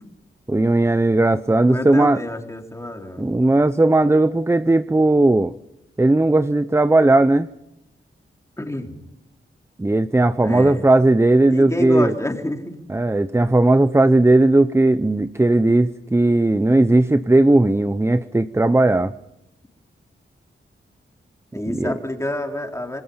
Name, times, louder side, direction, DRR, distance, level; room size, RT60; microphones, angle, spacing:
voice 1, 0.5-2.2 3.2-5.5 6.0-7.5 9.8-12.1 12.9-19.1 21.7-22.0, right 2 dB, 15° right, 13 dB, 0.7 m, -17 dB
voice 2, 1.6-3.3 8.6-9.0 10.4-10.8 11.5-12.8 21.5-23.0, left 1 dB, 15° left, 3 dB, 3.8 m, -28 dB
26.5 x 21.0 x 5.6 m, 0.86 s
cardioid pair, 60°, 20 cm